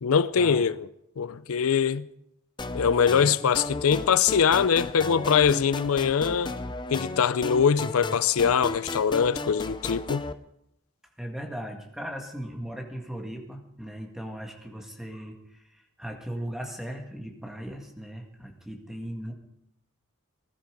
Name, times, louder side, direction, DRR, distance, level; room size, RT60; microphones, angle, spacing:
voice 1, 0.0-0.9 1.2-2.1 2.7-6.5 6.9-10.2, left 7 dB, 85° left, 0.5 m, -23 dB
sound 1, 2.6-10.3, left 2 dB, 20° left, 0.6 m, -34 dB
voice 2, 3.2-3.5 8.7-8.8 11.2-19.3, equal, ahead, 1.9 m, -38 dB
19.5 x 12.0 x 5.2 m
head